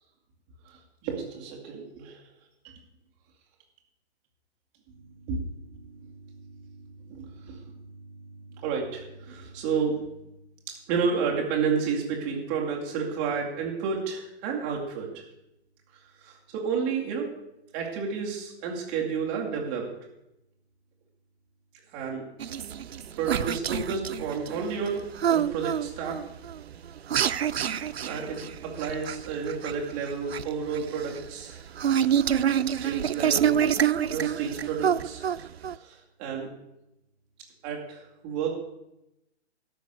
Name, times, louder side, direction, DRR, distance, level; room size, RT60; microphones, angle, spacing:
voice 1, 0.7-2.2 5.2-6.1 6.5-6.6 7.1-7.6 8.5-10.0 10.9-15.1 16.2-17.3 17.7-19.8 21.9-22.3 23.2-25.0 25.3-26.2 27.4-28.5 28.8-32.0 32.7-33.6 34.1-35.5 35.7-36.5 37.6-38.6, right 6 dB, 5° right, -2 dB, 0.3 m, -31 dB
sound 1, 22.4-35.8, right 9 dB, 65° right, 0.6 m, -27 dB
12.5 x 5.8 x 8.2 m, 0.87 s
figure-of-eight pair, 120°, 34 cm